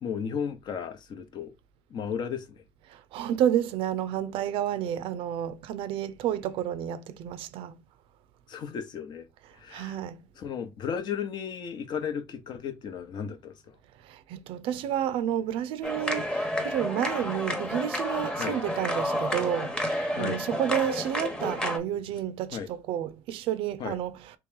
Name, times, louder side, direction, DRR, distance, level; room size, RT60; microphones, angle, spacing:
voice 1, 0.0-1.5 1.9-2.6 8.5-9.3 9.6-10.0 10.4-13.5 18.4-18.6 20.1-20.4 22.5-22.7 23.8-24.0, left 7 dB, 50° left, 0.8 m, -34 dB
voice 2, 2.9-7.8 9.7-10.2 14.0-24.3, right 10 dB, 70° right, 0.5 m, -30 dB
gralles no volem ser una regio d espanya, 15.8-21.8, left 1 dB, 10° left, 0.9 m, -30 dB
3.0 x 3.0 x 3.6 m
cardioid pair, 105°, 9 cm